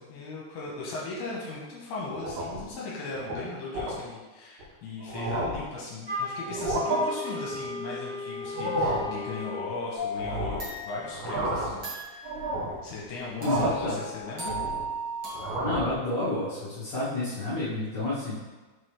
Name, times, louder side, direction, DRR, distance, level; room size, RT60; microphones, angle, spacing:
voice 1, 0.0-14.6, left 3 dB, 80° left, -5 dB, 2.8 m, -38 dB
sound 1, 2.1-2.7 3.1-3.4 3.8-4.0 4.6-4.7 5.0-5.7 6.5-7.0 8.4-9.1 10.2-10.7 11.1-11.8 12.2-12.8 13.4-13.9 14.2-14.9 15.3-16.0, right 1 dB, 80° right, 2.9 m, -31 dB
Wind instrument woodwind instrument, 6.0-9.7, left 2 dB, 65° right, 1.0 m, -36 dB
sound 2, 9.9-12.4 13.4-15.5, equal, 40° right, 1.6 m, -37 dB
voice 2, 13.4-14.0 15.6-18.4, left 2 dB, 55° left, -10 dB, 2.2 m, -29 dB
6.1 x 4.8 x 3.4 m, 1.2 s
omnidirectional pair, 4.6 m